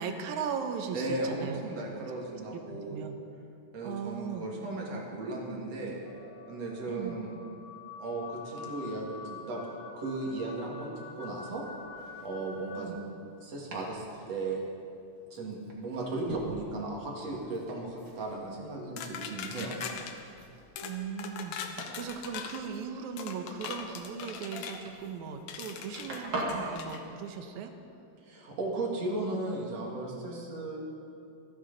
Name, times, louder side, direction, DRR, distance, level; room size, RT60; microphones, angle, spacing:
voice 1, 0.0-1.6 2.3-3.2 3.8-4.5 6.9-7.2 12.7-13.0 20.8-27.7, right 6 dB, 85° right, 6 dB, 2.4 m, -38 dB
voice 2, 0.9-3.1 3.7-6.0 6.5-7.3 8.0-11.6 12.2-13.1 13.4-14.6 15.3-19.7 28.2-30.8, right 2 dB, 60° right, -2 dB, 3.1 m, -36 dB
sound 1, 6.0-12.9, left 5 dB, 55° left, 1.0 m, -47 dB
Domestic sounds home sounds, 11.3-26.8, right 1 dB, 40° right, 2.5 m, -44 dB
sound 2, 19.0-20.1 20.8-20.9 21.2-22.6 23.2-24.8 25.5-26.2 26.8-27.0, left 7 dB, 80° left, 2.3 m, -40 dB
27.0 x 9.4 x 4.0 m, 2.6 s
omnidirectional pair, 3.3 m